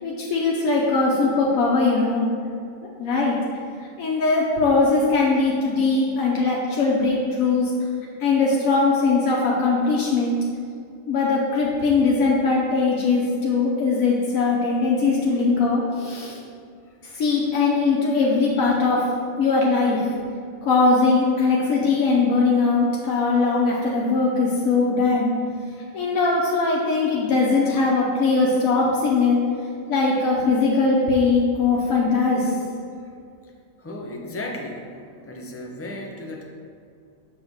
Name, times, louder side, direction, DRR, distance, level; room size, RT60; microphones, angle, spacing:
voice 1, 0.0-2.2 3.0-3.4 4.0-7.7 8.2-10.4 11.1-16.4 17.1-19.0 19.4-20.1 20.6-25.3 25.9-29.4 29.9-32.5, left 3 dB, 90° left, -4 dB, 1.3 m, -20 dB
voice 2, 33.8-34.9 35.3-36.5, left 1 dB, 15° left, 0 dB, 0.5 m, -34 dB
7.2 x 3.6 x 6.3 m, 2.4 s
omnidirectional pair, 1.4 m